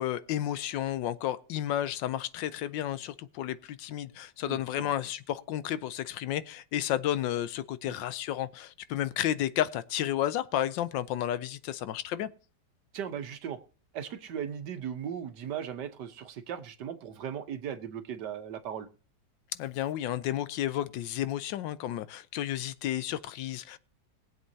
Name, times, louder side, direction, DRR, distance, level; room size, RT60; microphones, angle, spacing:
voice 1, 0.0-12.3 19.6-23.8, left 12 dB, 85° left, 1.4 m, -32 dB
voice 2, 4.5-4.9 7.9-8.0 12.9-13.6 13.9-18.9, right 8 dB, 70° right, 1.5 m, -37 dB
21.5 x 7.8 x 2.8 m
omnidirectional pair, 1.9 m